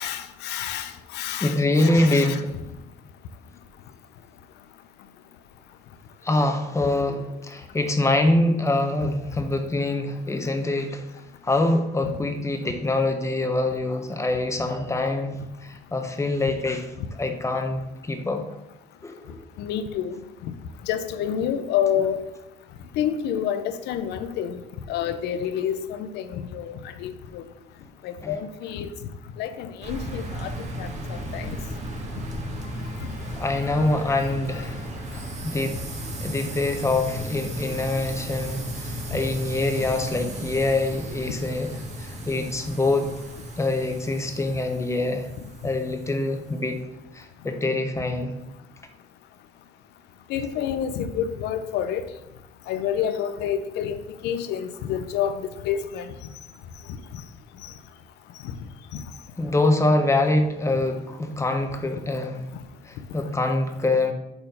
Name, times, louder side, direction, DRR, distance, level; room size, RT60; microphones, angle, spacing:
voice 1, 0.0-2.4 12.0-12.1 19.6-20.2 20.4-20.5 20.8-22.2 22.9-24.6 24.9-27.4 28.0-28.9 29.4-30.5 30.8-31.6 33.0-33.1 33.7-33.9 34.1-34.4 50.3-52.0 52.7-56.1 57.6-57.7 58.4-58.5 58.9-59.0, left 9 dB, 85° left, 10 dB, 0.7 m, -28 dB
voice 2, 1.4-2.5 6.2-11.0 11.4-16.9 17.2-18.5 19.0-19.4 28.2-28.4 33.4-35.8 36.2-41.7 42.0-43.3 43.6-45.3 45.6-46.8 47.1-48.3 59.4-62.5 62.8-64.1, left 2 dB, 15° left, 5 dB, 1.0 m, -25 dB
sound 1, 29.8-46.7, right 1 dB, 45° right, 1.7 m, -35 dB
6.9 x 4.3 x 5.5 m, 0.92 s
cardioid pair, 110°, 17 cm